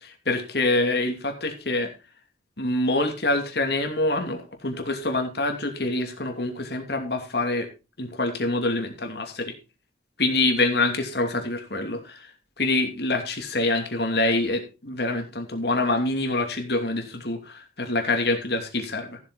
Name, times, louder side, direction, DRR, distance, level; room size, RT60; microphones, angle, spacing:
voice 1, 0.0-1.9 2.6-7.7 8.0-9.5 10.2-12.3 12.6-19.2, left 2 dB, 60° left, 5 dB, 2.8 m, -26 dB
14.5 x 7.9 x 4.1 m, 0.30 s
head